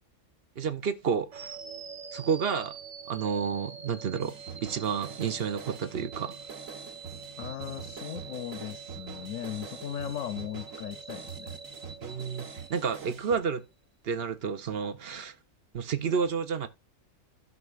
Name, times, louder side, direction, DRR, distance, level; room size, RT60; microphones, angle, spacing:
voice 1, 0.6-1.6 2.1-2.7 3.1-6.4 12.0-13.6 14.0-15.3 15.7-16.7, right 6 dB, 55° right, 0.9 m, -30 dB
sound 1, 1.3-13.4, right 6 dB, 40° right, 0.6 m, -45 dB
sound 2, 4.2-13.4, right 5 dB, 90° right, 1.8 m, -45 dB
voice 2, 7.4-11.6, left 11 dB, 80° left, 1.0 m, -38 dB
14.5 x 6.1 x 2.4 m
omnidirectional pair, 1.3 m